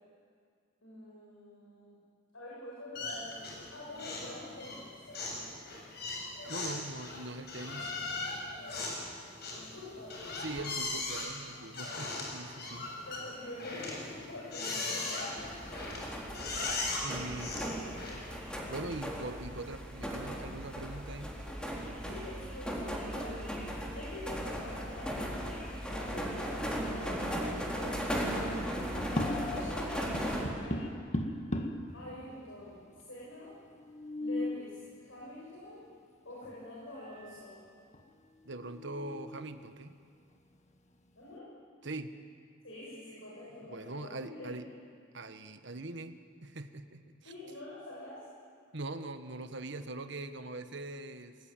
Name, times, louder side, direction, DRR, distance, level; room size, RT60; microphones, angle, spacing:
voice 1, 0.8-2.0 2.3-5.5 8.4-9.1 9.5-10.2 11.5-11.6 13.0-15.5 17.6-17.7 18.5-18.8 22.0-23.5 23.9-28.6 29.4-30.9 31.9-32.8 33.1-33.6 34.2-35.8 36.2-37.6 41.2-41.5 42.6-44.6 47.2-48.3, left 2 dB, 85° left, -6 dB, 7.9 m, -46 dB
sound 1, 2.9-3.7 3.9-4.3 4.6-18.4, left 3 dB, 55° left, 7.7 m, -38 dB
voice 2, 6.5-7.9 10.4-12.9 17.0-17.7 18.7-21.4 38.4-39.9 41.8-42.1 43.6-44.7 45.1-47.3 48.7-51.4, right 2 dB, 65° right, 8 dB, 1.5 m, -42 dB
sound 2, 15.4-30.4, equal, 5° left, 4.0 m, -37 dB
sound 3, 28.9-29.8 30.1-31.9 32.7-32.8 33.0-33.1 33.8-34.7 36.4-36.5 37.0-37.5 37.9-38.0 38.5-39.4, left 1 dB, 35° left, 1.8 m, -37 dB
28.0 x 21.0 x 9.3 m, 2.3 s
head